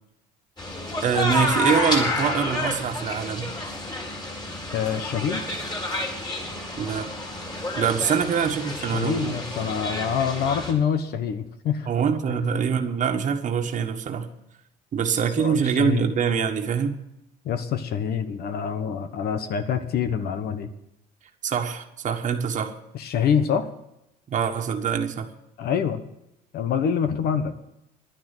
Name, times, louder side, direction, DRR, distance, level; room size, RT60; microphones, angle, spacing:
sound 1, 0.6-10.7, left 1 dB, 25° left, 4.5 m, -29 dB
voice 1, 1.0-3.5 6.8-7.1 7.8-9.3 11.9-14.3 14.9-17.0 21.4-22.7 24.3-25.3, right 7 dB, 45° right, 3 dB, 1.5 m, -24 dB
voice 2, 4.7-5.4 8.8-11.9 15.4-16.1 17.4-20.7 22.9-23.7 25.6-26.0 26.5-27.5, left 7 dB, 65° left, 9 dB, 1.2 m, -26 dB
11.0 x 10.0 x 9.1 m, 0.86 s
cardioid pair, 110°, 17 cm